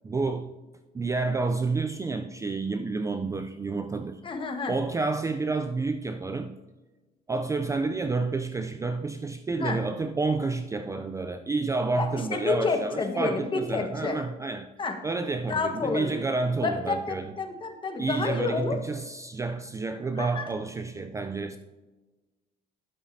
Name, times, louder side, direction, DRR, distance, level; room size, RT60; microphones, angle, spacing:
voice 1, 0.0-0.5 0.9-6.6 7.3-14.7 15.0-17.3 18.0-21.6, right 3 dB, 20° right, 0.4 m, -29 dB
voice 2, 4.2-4.7 9.6-9.8 11.9-14.2 14.8-15.0 15.5-16.2 16.6-18.8 20.2-20.5, left 4 dB, 30° left, 1.4 m, -29 dB
12.0 x 7.6 x 2.7 m
cardioid pair, 110°, 17 cm